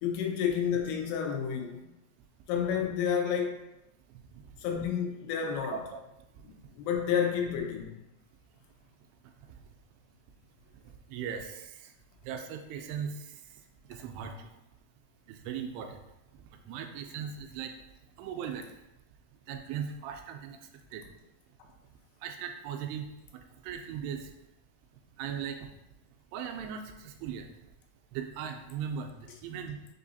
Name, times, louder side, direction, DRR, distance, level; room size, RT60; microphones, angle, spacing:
voice 1, 0.0-1.9 2.5-3.7 4.6-5.8 6.4-8.0, left 7 dB, 90° left, 2 dB, 2.7 m, -30 dB
voice 2, 11.1-11.7 12.3-13.1 13.9-14.3 15.3-16.0 16.7-17.7 18.2-18.6 19.5-20.6 20.9-21.0 22.2-23.1 23.6-24.2 25.2-25.6 26.3-27.5 28.1-29.1 29.4-29.8, right 8 dB, 85° right, 5 dB, 2.5 m, -37 dB
6.3 x 2.7 x 2.7 m, 0.91 s
omnidirectional pair, 4.6 m